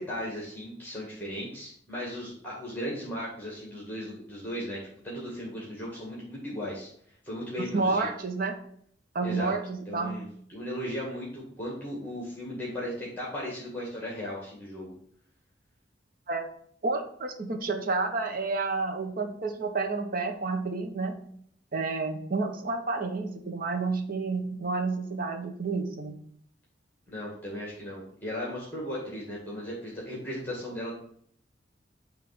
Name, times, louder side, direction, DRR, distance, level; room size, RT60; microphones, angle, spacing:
voice 1, 0.0-6.9 7.2-8.1 9.2-9.5 9.9-14.9 27.1-30.9, equal, 10° left, -4 dB, 1.9 m, -36 dB
voice 2, 7.6-8.6 9.1-10.3 16.3-16.4 16.8-21.2 21.7-26.1, right 3 dB, 50° right, 6 dB, 1.0 m, -30 dB
8.5 x 3.4 x 5.9 m, 0.63 s
head